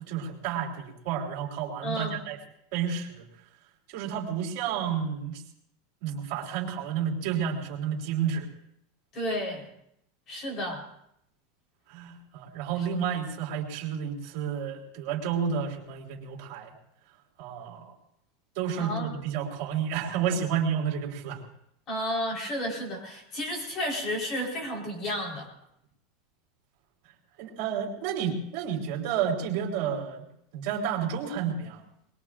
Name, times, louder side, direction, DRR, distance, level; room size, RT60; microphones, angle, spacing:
voice 1, 0.0-2.4 2.7-3.3 3.9-5.4 6.0-8.5 11.9-16.7 17.4-17.9 18.6-21.4 27.4-30.2 30.5-31.8, right 7 dB, 55° right, 0 dB, 3.8 m, -31 dB
voice 2, 1.8-2.2 9.1-9.7 10.3-10.9 18.8-19.1 21.9-25.5, equal, 30° left, 1 dB, 4.2 m, -32 dB
22.0 x 21.5 x 2.6 m, 0.73 s
supercardioid pair, 155°, 0 cm